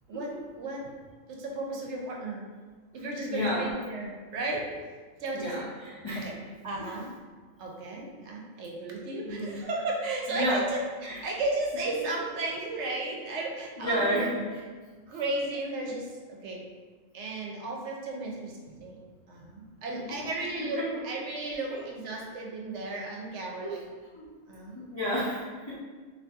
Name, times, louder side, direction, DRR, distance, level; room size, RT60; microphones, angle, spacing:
voice 1, 0.1-0.9 1.3-2.4 2.9-4.6 5.2-5.5 6.2-6.3 6.6-7.1 7.6-14.3 15.1-16.6 17.1-19.0 19.3-23.8 24.5-24.8, right 2 dB, 70° right, -1 dB, 0.8 m, -34 dB
voice 2, 3.3-3.7 5.3-6.3 9.2-9.6 10.3-10.6 11.0-11.2 13.8-14.6 20.8-20.9 23.6-23.7 24.1-24.3 24.7-25.8, equal, 35° left, -10 dB, 0.5 m, -31 dB
2.7 x 2.5 x 3.3 m, 1.4 s
omnidirectional pair, 1.3 m